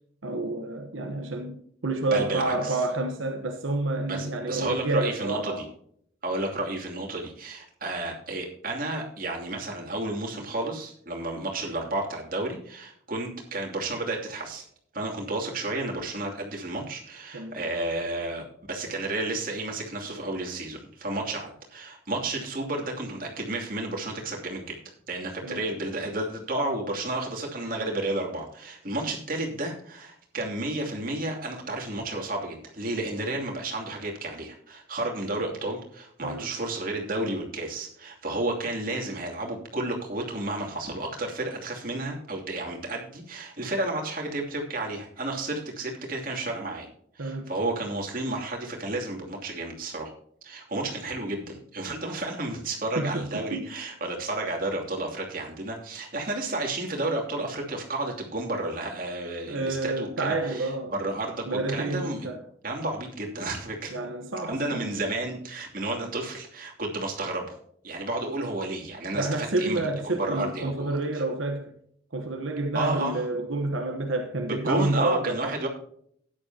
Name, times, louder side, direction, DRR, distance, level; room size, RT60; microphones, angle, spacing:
voice 1, 0.2-5.7 17.3-17.6 25.4-25.7 36.2-36.5 47.2-47.5 53.0-53.7 59.5-60.9 61.5-62.4 63.9-64.8 69.1-71.7 72.1-75.6, right 2 dB, 80° right, 1.1 m, -29 dB
voice 2, 2.1-2.8 4.1-5.6 6.2-14.6 14.9-24.8 25.1-46.9 47.1-50.1 50.4-62.3 62.6-64.0 64.5-67.6 67.8-71.0 72.7-73.2 74.5-75.7, right 2 dB, 45° right, 2.7 m, -32 dB
13.5 x 10.0 x 2.8 m
head